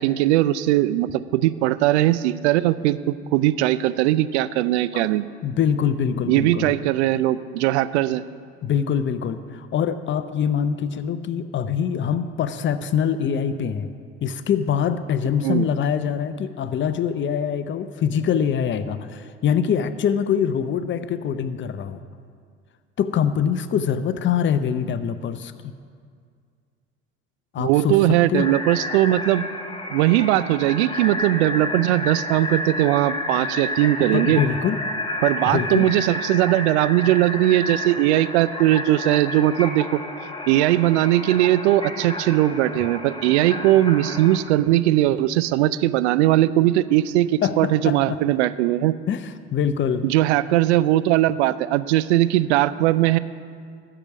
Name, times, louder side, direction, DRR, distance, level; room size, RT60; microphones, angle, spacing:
voice 1, 0.0-5.2 6.3-8.2 15.4-15.7 27.6-29.4 29.9-34.4 35.2-40.0 40.5-49.0 50.0-53.2, right 14 dB, 75° right, 16 dB, 0.5 m, -19 dB
voice 2, 5.4-6.7 8.6-13.9 14.2-22.0 23.0-25.5 27.5-28.5 34.1-34.8 35.5-35.9 47.4-48.2 49.1-50.0, left 8 dB, 35° left, 11 dB, 0.7 m, -24 dB
sound 1, 28.3-44.4, left 1 dB, 15° left, 1.5 m, -31 dB
13.0 x 5.0 x 7.9 m, 2.1 s
hypercardioid pair, 65°, 34 cm